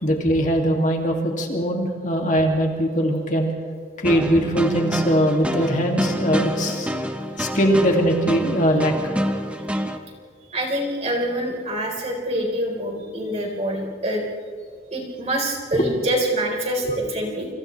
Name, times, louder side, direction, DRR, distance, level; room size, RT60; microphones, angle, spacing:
voice 1, 0.0-3.5 4.0-6.9 7.4-9.2 15.7-15.9 16.8-17.0, equal, 45° left, 1 dB, 2.6 m, -21 dB
sound 1, 4.0-10.0, equal, 5° right, 1.0 m, -27 dB
voice 2, 10.5-14.2 14.9-17.5, right 1 dB, 35° right, 0 dB, 4.4 m, -25 dB
28.5 x 27.5 x 3.4 m, 2.1 s
head